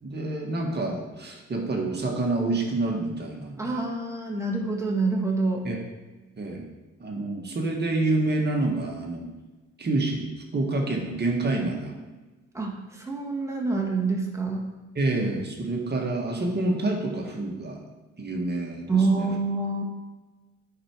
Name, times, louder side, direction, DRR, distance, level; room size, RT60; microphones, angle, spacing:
voice 1, 0.0-3.7 5.6-5.8 6.4-6.7 7.0-9.3 9.8-11.9 15.0-17.8 18.2-19.3, right 2 dB, 35° right, 0 dB, 1.8 m, -28 dB
voice 2, 3.6-5.7 12.5-14.6 18.9-19.8, right 3 dB, 10° right, -2 dB, 2.0 m, -26 dB
11.0 x 4.8 x 4.7 m, 1.2 s
cardioid pair, 90°, 30 cm